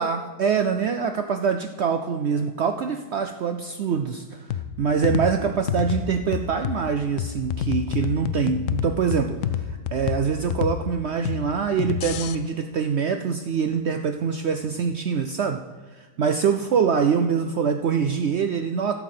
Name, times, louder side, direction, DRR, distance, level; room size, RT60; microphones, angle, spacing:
voice 1, 0.0-15.6 15.9-18.9, right 6 dB, 75° right, 7 dB, 0.6 m, -24 dB
sound 1, 4.5-12.4, left 9 dB, 70° left, 0.8 m, -29 dB
12.5 x 4.7 x 7.6 m, 1.3 s
omnidirectional pair, 1.7 m